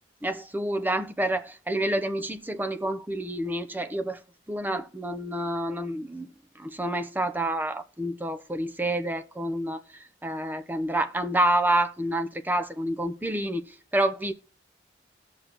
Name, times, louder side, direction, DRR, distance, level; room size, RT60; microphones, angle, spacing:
voice 1, 0.2-4.2 4.5-6.3 6.6-9.8 10.2-13.6 13.9-14.3, right 1 dB, 10° right, 0.7 m, -28 dB
19.5 x 6.5 x 3.0 m
head